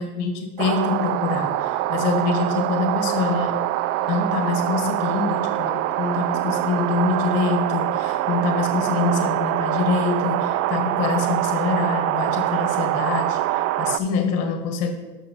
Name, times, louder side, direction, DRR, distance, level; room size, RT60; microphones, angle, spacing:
voice 1, 0.0-3.6 4.1-14.9, left 4 dB, 55° left, 6 dB, 1.5 m, -25 dB
sound 1, 0.6-14.0, right 14 dB, 50° right, 0.4 m, -24 dB
6.4 x 5.8 x 5.3 m, 1.2 s
hypercardioid pair, 90°, 30 cm